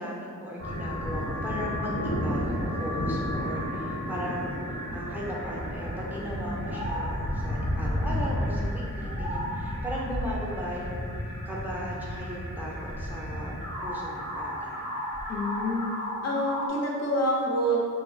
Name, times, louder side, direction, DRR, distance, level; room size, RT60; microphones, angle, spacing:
voice 1, 0.0-11.2 11.5-13.6 13.8-14.9, equal, 5° right, -4 dB, 0.4 m, -37 dB
sound 1, 0.6-16.7, equal, 75° left, 0.9 m, -32 dB
voice 2, 15.3-15.9 16.2-17.8, equal, 55° left, -3 dB, 0.5 m, -27 dB
2.6 x 2.0 x 2.5 m, 2.2 s
cardioid pair, 50°, 32 cm